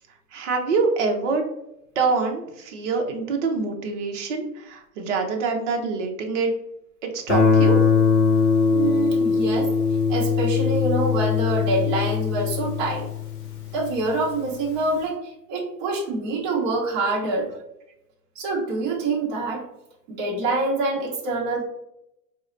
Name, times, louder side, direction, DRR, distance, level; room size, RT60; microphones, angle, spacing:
voice 1, 0.3-1.4 2.0-6.5 7.0-7.8, right 4 dB, 50° right, 3 dB, 0.8 m, -25 dB
Guitar, 7.3-14.0, left 5 dB, 35° left, 0.8 m, -21 dB
voice 2, 8.7-9.7 10.1-13.1 13.7-17.5 18.3-19.6 20.1-21.7, right 2 dB, 35° right, -5 dB, 1.1 m, -26 dB
4.6 x 2.1 x 2.5 m, 0.85 s
hypercardioid pair, 135°, 47 cm